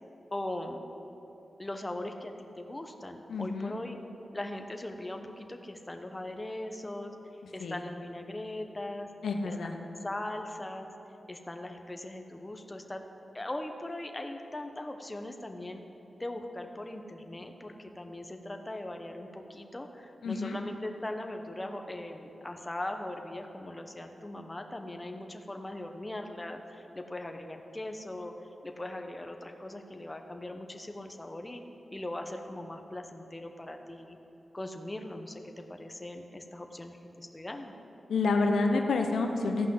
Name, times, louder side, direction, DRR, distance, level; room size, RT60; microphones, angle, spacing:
voice 1, 0.3-0.8 1.6-4.0 4.3-7.1 7.5-9.1 9.5-10.9 11.3-13.0 13.3-15.8 16.2-28.3 28.6-31.6 31.9-34.2 34.5-37.7, left 1 dB, 20° left, 5 dB, 0.9 m, -40 dB
voice 2, 3.3-3.7 7.6-7.8 9.2-9.7 20.2-20.6 38.1-39.7, left 3 dB, 90° left, 4 dB, 0.8 m, -28 dB
14.0 x 5.6 x 7.7 m, 3.0 s
cardioid pair, 65°, 0 cm